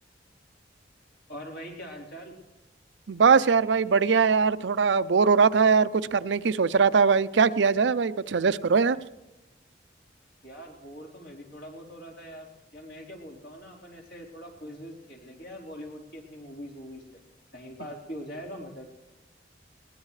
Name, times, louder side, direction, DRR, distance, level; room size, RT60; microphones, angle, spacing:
voice 1, 1.3-2.3 10.4-17.2 17.5-18.9, equal, 70° left, -1 dB, 4.1 m, -42 dB
voice 2, 3.1-9.0, right 5 dB, 80° right, 14 dB, 0.5 m, -21 dB
21.0 x 19.5 x 3.3 m, 1.0 s
head